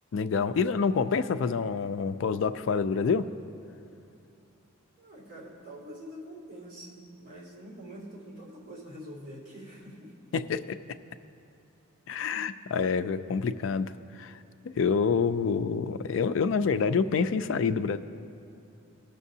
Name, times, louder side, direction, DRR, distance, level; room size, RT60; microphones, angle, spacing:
voice 1, 0.1-3.2 10.3-10.8 12.1-13.9 14.2-14.4 14.7-18.0, left 5 dB, 65° left, 11 dB, 0.3 m, -27 dB
voice 2, 5.0-10.1, equal, 40° right, -9 dB, 2.4 m, -45 dB
19.5 x 6.7 x 2.7 m, 2.6 s
head